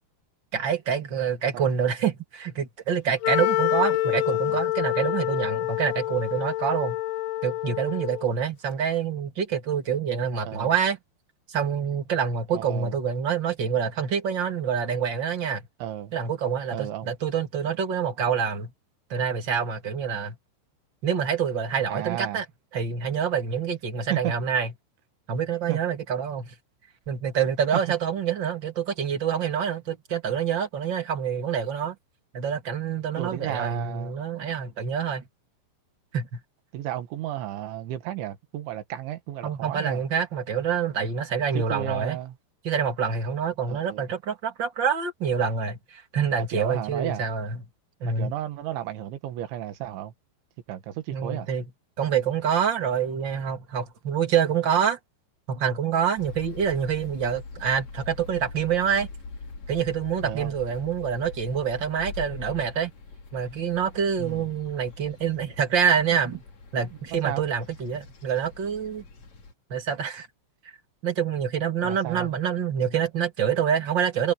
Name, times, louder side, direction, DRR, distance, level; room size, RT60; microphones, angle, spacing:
voice 1, 0.5-7.0 7.4-11.0 11.5-15.6 16.1-18.7 19.1-20.4 21.0-22.4 22.7-24.7 25.3-26.5 27.1-31.9 32.3-35.2 36.1-36.4 39.4-42.2 42.6-47.6 48.0-48.3 51.1-51.6 52.0-55.0 55.5-59.1 59.7-62.9 63.3-66.4 66.7-69.0 69.7-70.3 71.0-74.3, right 7 dB, 35° right, 2.0 m, -26 dB
Wind instrument woodwind instrument, 3.2-8.3, left 16 dB, 85° left, 2.3 m, -27 dB
voice 2, 4.0-4.6 10.4-10.7 12.5-12.9 15.8-16.1 16.7-17.1 21.9-22.4 24.1-24.3 25.7-25.8 33.2-34.1 36.7-40.0 41.5-42.4 43.7-44.0 46.4-47.3 48.1-50.1 50.7-51.5 60.2-60.5 64.2-64.5 67.1-67.4 71.8-72.3, right 12 dB, 80° right, 4.0 m, -33 dB
sound 1, 56.2-69.5, left 4 dB, 40° left, 4.4 m, -43 dB
omnidirectional pair, 5.3 m